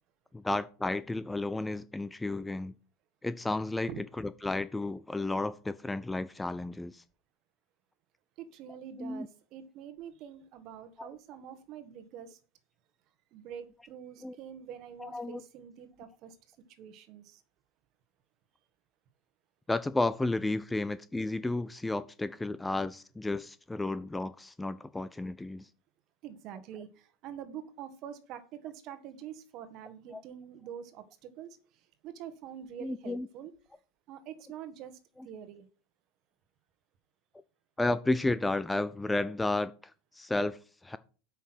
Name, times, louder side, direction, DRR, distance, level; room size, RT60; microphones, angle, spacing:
voice 1, 0.3-2.7 3.2-7.0 9.0-9.3 11.0-11.1 14.2-14.3 15.0-15.4 19.7-25.7 30.1-30.2 32.8-33.3 37.8-41.0, left 2 dB, 5° left, 0.3 m, -32 dB
voice 2, 8.4-12.4 13.3-16.4 16.8-17.4 26.2-33.5 34.1-35.0 35.2-35.7, right 9 dB, 40° right, 1.4 m, -45 dB
8.3 x 5.9 x 6.1 m
supercardioid pair, 155°, 0 cm